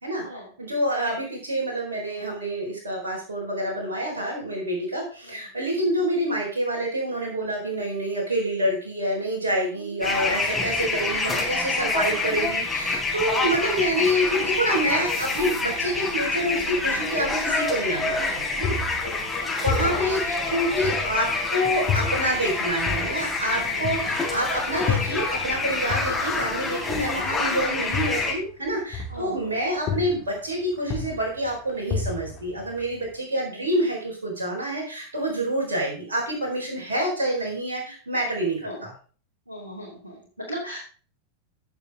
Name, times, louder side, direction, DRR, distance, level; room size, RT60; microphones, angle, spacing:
voice 1, 0.0-18.8 19.6-38.9, equal, 70° right, -2 dB, 4.5 m, -27 dB
voice 2, 9.7-10.7 13.1-13.3 19.0-20.0 21.0-21.1 23.6-24.2 29.1-29.5 33.5-33.7 38.6-38.9 39.5-40.8, equal, 85° right, -3 dB, 2.7 m, -39 dB
sound 1, 10.0-28.3, left 3 dB, 10° left, 3.8 m, -27 dB
sound 2, 18.6-21.4 21.9-25.6 25.9-29.6 29.9-30.5 30.8-33.1, left 5 dB, 30° left, 2.7 m, -31 dB
16.0 x 6.9 x 3.7 m, 0.40 s
figure-of-eight pair, 90°, 0 cm